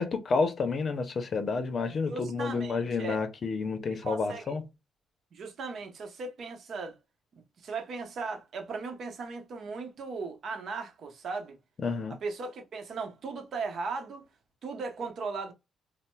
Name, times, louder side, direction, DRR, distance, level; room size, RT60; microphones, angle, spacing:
voice 1, 0.0-4.6 11.8-12.1, left 4 dB, 45° left, 0.6 m, -30 dB
voice 2, 2.0-3.2 4.0-4.5 5.3-7.0 7.6-11.6 12.2-14.2 14.6-15.5, right 4 dB, 60° right, 0.8 m, -37 dB
4.1 x 2.0 x 2.2 m
cardioid pair, 90°, 0 cm